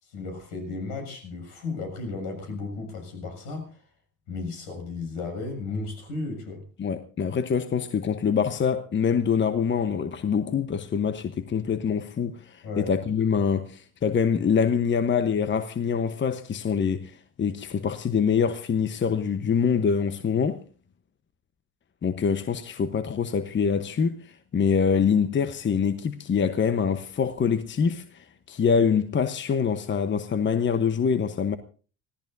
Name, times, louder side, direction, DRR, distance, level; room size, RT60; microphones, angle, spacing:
voice 1, 0.0-3.8 4.3-6.6 12.6-12.9, left 3 dB, 65° left, 7.2 m, -34 dB
voice 2, 6.8-20.6 22.0-31.6, left 6 dB, 25° left, 1.0 m, -25 dB
26.0 x 17.0 x 2.7 m
figure-of-eight pair, 60°, 43 cm